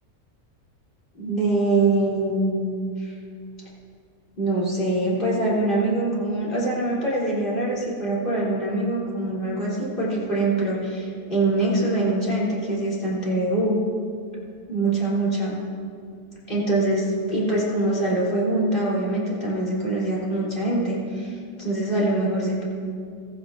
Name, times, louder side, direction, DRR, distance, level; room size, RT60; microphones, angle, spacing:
voice 1, 1.2-3.1 4.4-13.8 14.7-15.5 16.5-22.6, right 2 dB, 35° left, -7 dB, 3.5 m, -24 dB
16.5 x 14.0 x 2.6 m, 2.3 s
omnidirectional pair, 1.7 m